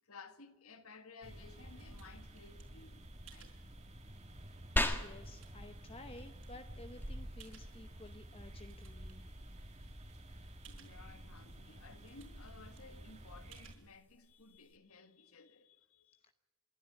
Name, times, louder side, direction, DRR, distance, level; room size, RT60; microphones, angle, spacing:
voice 1, 0.0-3.0 3.3-3.8 10.7-16.2, left 4 dB, 85° left, 1.6 m, -57 dB
sound 1, 1.1-2.6 3.3-3.6 4.3-4.4 4.9-5.8 6.4-6.5 7.4-8.0 8.4-9.1 9.5-9.6 9.8-9.9 10.6-11.0 11.6-11.7 11.8-12.5 12.8-12.9 13.5-13.8, right 10 dB, 70° right, 4.7 m, -61 dB
sound 2, 1.2-13.7, equal, 30° right, 2.1 m, -51 dB
voice 2, 4.8-9.3, left 2 dB, 25° left, 0.9 m, -54 dB
sound 3, 4.8-14.8, left 1 dB, 10° left, 1.5 m, -43 dB
27.5 x 12.5 x 9.8 m
head